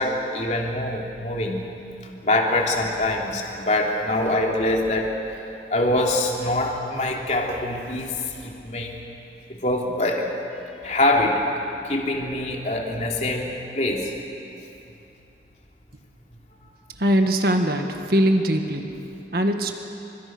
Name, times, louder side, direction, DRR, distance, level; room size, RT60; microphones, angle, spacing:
voice 1, 0.0-1.7 2.2-5.1 5.7-8.2 8.4-9.0 9.5-10.3 10.8-11.4 11.8-14.1, left 1 dB, 40° left, -1 dB, 3.2 m, -24 dB
voice 2, 17.0-18.9 19.3-19.7, equal, 55° right, 4 dB, 1.8 m, -21 dB
30.0 x 25.5 x 6.2 m, 2.9 s
head